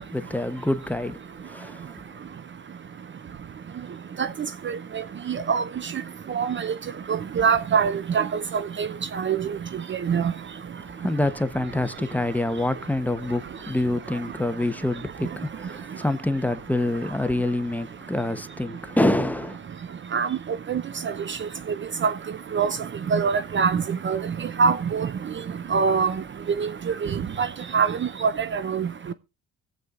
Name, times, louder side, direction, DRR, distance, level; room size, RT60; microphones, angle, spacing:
voice 1, 0.0-2.0 11.0-19.6, left 1 dB, 5° left, 0.9 m, -26 dB
voice 2, 5.3-5.6 6.3-6.7 7.1-8.9 9.1-9.4 10.1-10.3 20.1-20.3 20.7-20.8 22.0-22.1 22.5-22.8 23.1-24.2 24.6-25.1 25.7-26.1 26.6-26.7 27.0-27.5 27.7-27.9 28.2-28.9, right 6 dB, 40° right, 0.6 m, -23 dB
24.0 x 8.1 x 2.4 m
cardioid pair, 90°, 30 cm